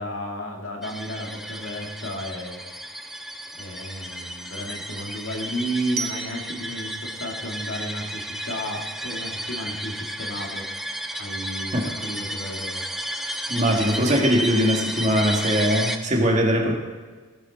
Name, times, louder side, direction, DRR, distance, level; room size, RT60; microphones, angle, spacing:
voice 1, 0.0-10.7 11.2-12.8, equal, 80° left, 1 dB, 2.1 m, -33 dB
sound 1, 0.8-16.0, right 1 dB, ahead, 0.6 m, -33 dB
Glockenspiel, 6.0-8.8, right 6 dB, 50° right, 1.1 m, -38 dB
voice 2, 13.5-16.7, equal, 35° right, 1 dB, 1.8 m, -21 dB
18.0 x 8.1 x 4.1 m, 1.4 s
head